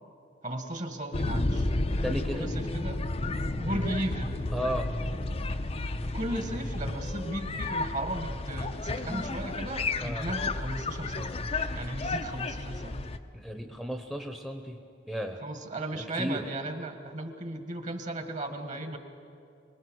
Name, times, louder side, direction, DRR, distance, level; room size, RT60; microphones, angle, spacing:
voice 1, 0.4-1.7 2.3-3.0 3.6-4.4 6.1-11.4 11.7-13.1 15.4-19.0, right 1 dB, 45° right, 6 dB, 1.8 m, -35 dB
sound 1, 1.1-13.2, left 2 dB, 35° left, 0.7 m, -32 dB
voice 2, 2.0-2.5 4.5-4.9 10.0-10.3 13.3-14.8 15.1-15.4 15.9-16.5, equal, ahead, 5 dB, 1.0 m, -34 dB
25.5 x 20.0 x 6.4 m, 2.5 s
head